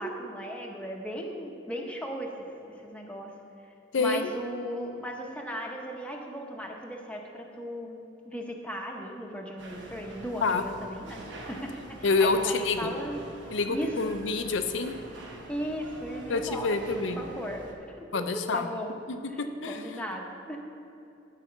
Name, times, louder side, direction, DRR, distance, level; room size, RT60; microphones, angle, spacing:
voice 1, 0.0-3.3 4.0-13.2 13.7-13.9 15.5-16.7 17.0-17.6 17.9-18.9 19.3-19.4 19.7-20.6, equal, 5° left, 0 dB, 0.8 m, -37 dB
voice 2, 3.9-4.3 10.4-10.6 12.0-12.9 13.5-14.9 16.3-17.2 18.1-18.7 19.1-20.0, left 3 dB, 90° left, 8 dB, 0.6 m, -27 dB
sound 1, 9.6-17.7, right 1 dB, 70° right, 1.2 m, -46 dB
12.5 x 4.1 x 5.8 m, 2.9 s
head